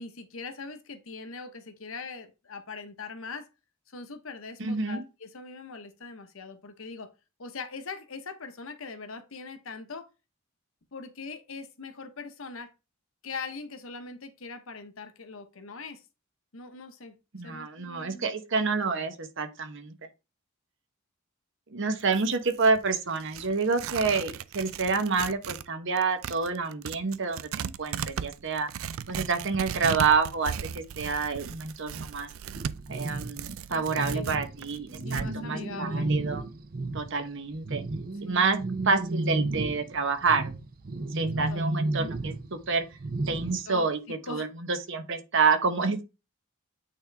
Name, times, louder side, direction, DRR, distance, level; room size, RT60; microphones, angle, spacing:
voice 1, 0.0-3.5 3.9-7.1 7.4-10.1 10.9-12.7 13.2-16.0 16.5-17.1 17.4-18.3 33.7-34.4 35.0-36.1 38.2-38.4 41.2-41.6 43.7-44.5, left 4 dB, 80° left, 1.0 m, -41 dB
voice 2, 4.6-5.0 17.3-19.9 21.7-28.7 29.1-32.3 32.9-36.4 36.9-37.8 38.2-38.6 38.8-40.5 40.9-42.8 43.3-46.0, right 4 dB, 60° right, 1.0 m, -28 dB
Tearing, 22.0-25.7 26.0-35.3, right 8 dB, 80° right, 0.4 m, -37 dB
sound 1, 32.5-37.2 37.5-43.6, right 2 dB, 45° right, 0.7 m, -32 dB
8.8 x 3.8 x 3.4 m
head